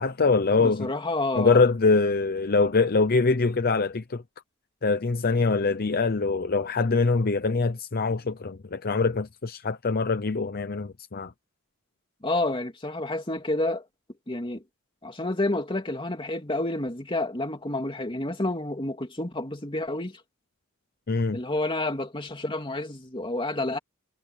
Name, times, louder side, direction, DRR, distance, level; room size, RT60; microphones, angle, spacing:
voice 1, 0.0-0.9 1.4-4.2 4.8-11.3 21.1-21.4, left 4 dB, 45° left, 0.7 m, -24 dB
voice 2, 0.6-1.6 12.2-13.9 14.3-14.6 15.0-20.2 21.3-23.8, left 2 dB, 25° left, 2.7 m, -29 dB
head